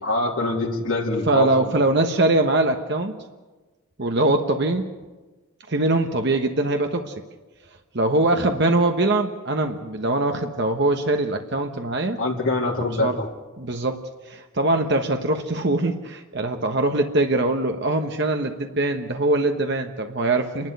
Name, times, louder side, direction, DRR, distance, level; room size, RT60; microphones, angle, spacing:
voice 1, 0.0-1.7 12.2-13.3, left 2 dB, 65° left, -3 dB, 3.0 m, -24 dB
voice 2, 1.3-3.2 4.0-4.8 5.7-7.1 7.9-12.2 13.0-13.2 13.6-20.7, right 2 dB, 50° right, 4 dB, 1.2 m, -22 dB
28.5 x 12.0 x 9.6 m, 1.2 s
head